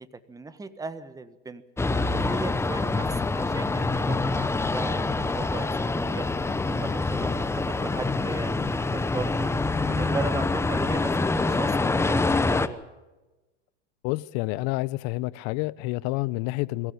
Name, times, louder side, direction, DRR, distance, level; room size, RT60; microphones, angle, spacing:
voice 1, 0.0-1.6 2.1-6.3 6.6-9.5 9.8-12.8, right 3 dB, 10° right, 1.4 m, -37 dB
sound 1, 1.8-12.7, left 3 dB, 5° left, 0.9 m, -26 dB
voice 2, 14.0-16.9, left 21 dB, 45° left, 0.8 m, -29 dB
22.5 x 15.0 x 9.5 m
hypercardioid pair, 115°, 37 cm